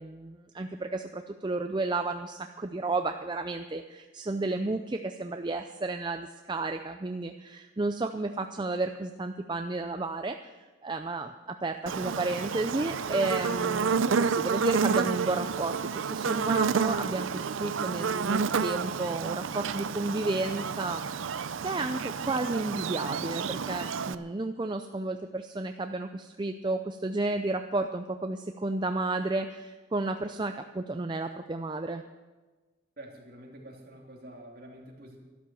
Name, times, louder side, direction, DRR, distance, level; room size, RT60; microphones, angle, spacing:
voice 1, 0.0-10.5 10.8-32.0, right 2 dB, 25° right, 7 dB, 0.4 m, -32 dB
Buzz, 11.9-24.1, right 6 dB, 80° right, 0.5 m, -30 dB
voice 2, 33.0-35.2, right 1 dB, 45° right, -1 dB, 3.1 m, -47 dB
13.0 x 12.5 x 7.0 m, 1.3 s
head